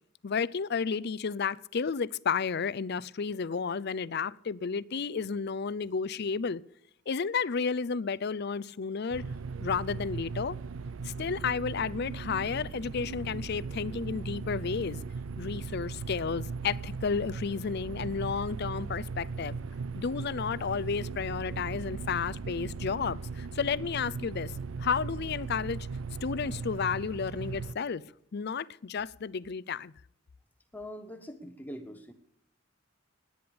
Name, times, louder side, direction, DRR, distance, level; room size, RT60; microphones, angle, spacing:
voice 1, 0.2-6.6 7.1-9.2 9.6-10.6 11.0-15.0 15.4-19.6 20.0-24.5 24.8-25.9 26.2-28.0 28.3-29.9, left 5 dB, 55° left, 0.5 m, -32 dB
sound 1, 9.1-27.7, right 4 dB, 80° right, 0.5 m, -38 dB
voice 2, 30.7-32.1, equal, 10° left, 1.0 m, -43 dB
18.0 x 10.5 x 7.0 m
head